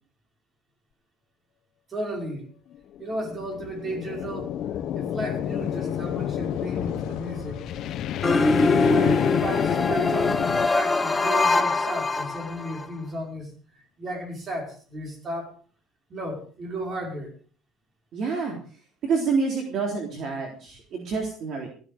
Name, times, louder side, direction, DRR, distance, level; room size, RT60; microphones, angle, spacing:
voice 1, 1.9-2.5 3.0-4.5 4.9-7.6 8.2-8.5 8.9-13.5 14.0-15.6 16.1-17.3, right 1 dB, 30° right, 3 dB, 5.4 m, -34 dB
sound 1, 3.0-10.7, left 11 dB, 50° left, 1.0 m, -29 dB
sound 2, 3.2-11.3 11.7-12.8, left 7 dB, 75° left, 2.0 m, -42 dB
sound 3, 8.2-12.9, left 3 dB, 10° left, 1.1 m, -23 dB
voice 2, 18.1-18.6 19.0-21.7, right 4 dB, 50° right, 1 dB, 3.7 m, -27 dB
15.0 x 15.0 x 5.1 m, 0.42 s
cardioid pair, 155°, 0 cm